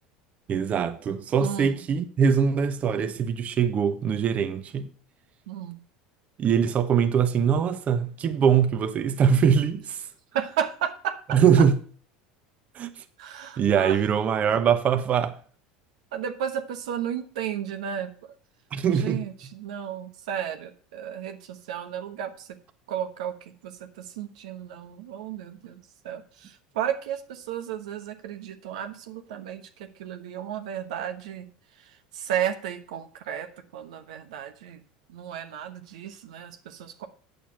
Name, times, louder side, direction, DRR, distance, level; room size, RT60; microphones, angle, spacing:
voice 1, 0.5-4.9 6.4-10.1 11.3-11.8 12.7-13.0 13.6-15.4 18.7-19.2, right 7 dB, 40° right, 1.1 m, -22 dB
voice 2, 1.4-1.8 5.5-5.8 10.3-11.6 13.2-14.0 16.1-18.3 18.9-22.6 22.9-31.5 31.8-34.8 35.1-37.1, right 9 dB, 75° right, 1.1 m, -33 dB
8.8 x 7.0 x 5.7 m
hypercardioid pair, 85°, 4 cm